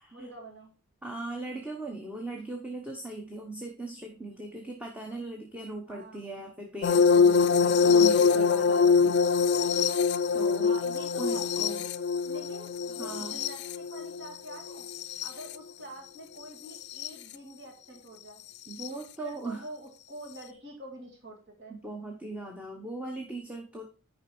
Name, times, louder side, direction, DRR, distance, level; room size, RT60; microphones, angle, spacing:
voice 1, 0.1-0.7 5.9-6.2 10.6-11.4 12.2-14.9 15.2-18.4 18.9-21.7, right 1 dB, 50° right, 1 dB, 2.0 m, -46 dB
voice 2, 1.0-9.2 10.3-10.8 11.2-11.8 13.0-13.4 18.7-19.6 21.7-23.8, right 2 dB, 5° right, 2 dB, 0.9 m, -39 dB
sound 1, 6.8-15.5 16.8-17.1 18.8-18.9, left 5 dB, 50° left, 0.4 m, -24 dB
9.5 x 5.4 x 4.3 m, 0.36 s
head